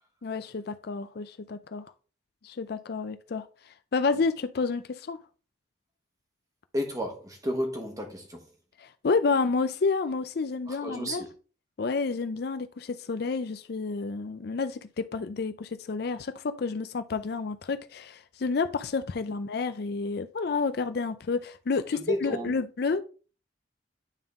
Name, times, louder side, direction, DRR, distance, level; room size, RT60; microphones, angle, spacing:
voice 1, 0.2-1.8 2.4-5.2 8.8-11.2 11.8-23.0, left 4 dB, 55° left, 0.4 m, -30 dB
voice 2, 6.7-8.5 10.7-11.3 21.9-22.5, equal, 20° right, 1.3 m, -32 dB
9.0 x 3.7 x 3.6 m
head